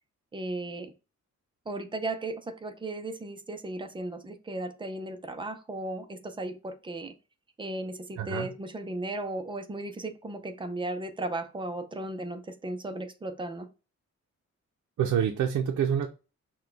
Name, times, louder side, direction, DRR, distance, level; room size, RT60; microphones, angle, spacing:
voice 1, 0.3-0.9 1.7-7.1 7.6-13.7, right 2 dB, 15° right, 7 dB, 0.5 m, -36 dB
voice 2, 8.2-8.5 15.0-16.1, right 8 dB, 70° right, 3 dB, 0.6 m, -27 dB
5.9 x 2.3 x 3.3 m, 0.32 s
wide cardioid pair, 160°, 29 cm